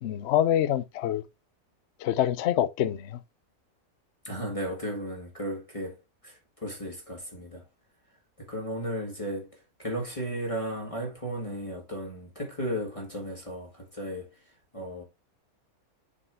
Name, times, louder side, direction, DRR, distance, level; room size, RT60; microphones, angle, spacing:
voice 1, 0.0-1.2 2.0-3.2, left 11 dB, 60° left, 0.7 m, -26 dB
voice 2, 4.2-7.7 8.4-14.4 14.7-15.0, equal, 20° left, 1.8 m, -35 dB
6.8 x 4.8 x 3.4 m
omnidirectional pair, 1.6 m